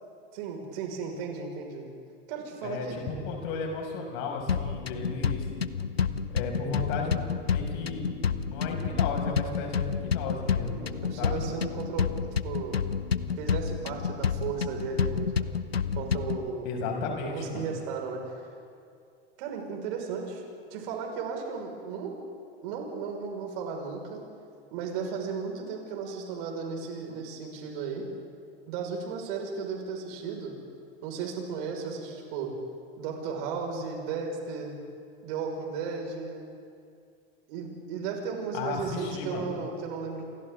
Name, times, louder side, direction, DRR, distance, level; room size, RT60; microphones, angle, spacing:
voice 1, 0.3-1.9 2.3-3.0 10.7-12.8 13.4-15.5 15.9-16.7 17.2-18.5 19.4-20.4 20.7-22.2 22.6-24.2 24.7-28.1 28.7-30.6 31.0-32.5 33.0-34.7 35.2-36.4 37.5-40.2, right 5 dB, 60° right, 1 dB, 5.9 m, -35 dB
voice 2, 2.6-5.5 6.3-7.1 7.5-8.1 8.4-10.8 11.1-11.4 16.6-17.7 38.5-39.5, left 4 dB, 55° left, 1 dB, 6.5 m, -34 dB
sound 1, 4.5-16.5, left 6 dB, 90° left, 0.8 m, -30 dB
29.0 x 27.0 x 3.9 m, 2.4 s
figure-of-eight pair, 85°, 30 cm